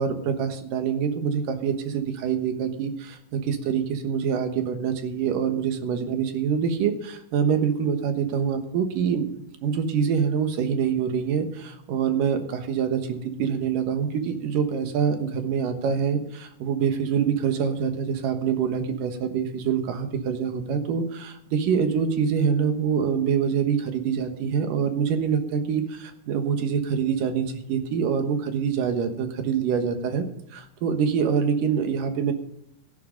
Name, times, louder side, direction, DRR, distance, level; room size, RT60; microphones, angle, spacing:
voice 1, 0.0-30.3 30.5-32.3, right 7 dB, 85° right, 7 dB, 3.0 m, -25 dB
14.0 x 11.0 x 5.3 m, 0.77 s
omnidirectional pair, 3.8 m